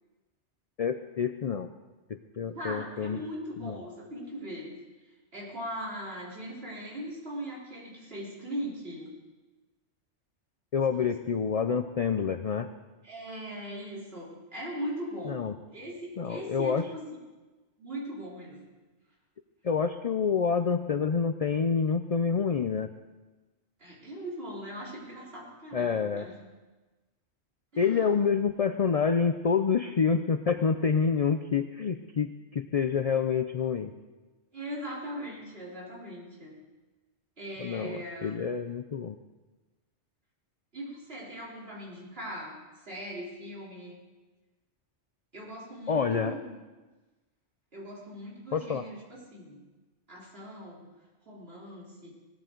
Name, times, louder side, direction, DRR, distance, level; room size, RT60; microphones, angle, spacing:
voice 1, 0.8-1.7 2.1-3.2 3.6-3.8 10.7-12.7 15.3-15.5 16.2-16.8 19.6-22.9 25.7-26.3 27.8-33.9 37.6-39.2 45.9-46.4 48.5-48.8, left 6 dB, 50° left, 8 dB, 0.4 m, -27 dB
voice 2, 2.4-4.7 5.3-9.1 11.0-11.1 13.0-15.4 15.7-17.0 17.8-18.6 23.8-26.4 27.7-28.1 34.5-36.6 37.4-38.4 40.7-42.6 42.8-44.0 45.3-46.6 47.7-49.6 50.1-50.9 51.3-52.1, equal, 55° right, -5 dB, 4.0 m, -40 dB
18.0 x 13.5 x 3.9 m, 1.2 s
omnidirectional pair, 1.2 m